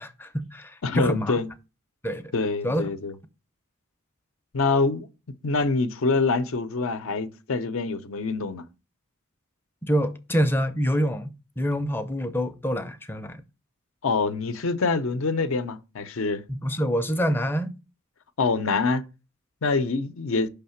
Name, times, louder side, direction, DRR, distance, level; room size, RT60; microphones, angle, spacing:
voice 1, 0.0-1.4 2.0-2.3 2.6-2.8 9.9-13.4 16.5-17.7, equal, 10° left, 0.5 m, -26 dB
voice 2, 0.8-1.5 2.3-3.1 4.5-5.1 5.4-8.6 14.0-16.4 18.4-19.0 19.6-20.5, left 3 dB, 65° left, 0.6 m, -25 dB
5.6 x 3.4 x 5.7 m
head